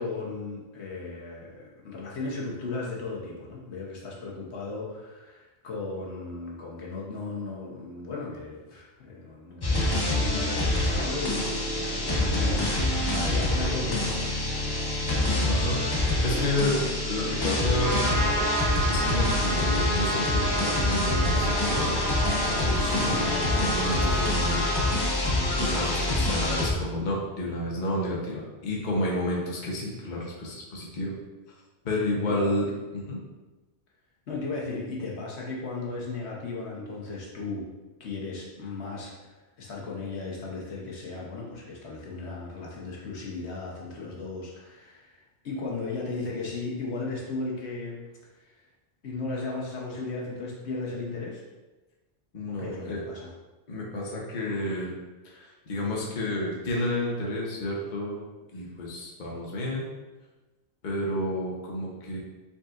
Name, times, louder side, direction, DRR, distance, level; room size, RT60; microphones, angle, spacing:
voice 1, 0.0-14.3 22.9-23.3 32.3-32.5 34.3-37.7 38.0-48.0 48.4-48.5 49.0-51.4 52.5-53.3, left 3 dB, 70° left, -3 dB, 1.1 m, -36 dB
sound 1, 9.6-26.7, left 1 dB, 30° left, 0.5 m, -26 dB
voice 2, 15.5-16.8 17.1-18.0 18.9-21.9 22.5-25.2 25.6-31.1 31.8-33.2 52.3-53.0 53.7-54.9 55.2-58.2 58.5-59.9 60.8-62.2, left 1 dB, 45° left, -3 dB, 1.0 m, -31 dB
Trumpet, 17.8-25.0, right 1 dB, 75° right, 1.2 m, -30 dB
5.2 x 4.0 x 2.4 m, 1.2 s
omnidirectional pair, 1.2 m